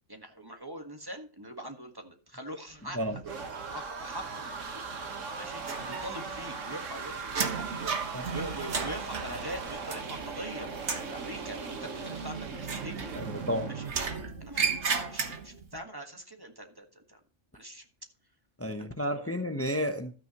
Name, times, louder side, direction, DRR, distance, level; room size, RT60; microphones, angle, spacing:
voice 1, 0.1-3.0 3.7-4.8 5.3-13.1 13.7-14.0 14.4-17.2 17.5-17.8 18.8-19.3, right 1 dB, 20° right, 1.5 m, -43 dB
sound 1, 2.7-13.9, right 4 dB, 80° right, 1.8 m, -39 dB
sound 2, 5.6-6.4 6.7-10.5 10.8-11.2 12.6-13.5 13.9-15.7, right 5 dB, 65° right, 1.6 m, -34 dB
voice 2, 13.2-13.7 18.6-20.1, equal, 15° left, 0.7 m, -31 dB
13.5 x 9.2 x 3.0 m
omnidirectional pair, 1.3 m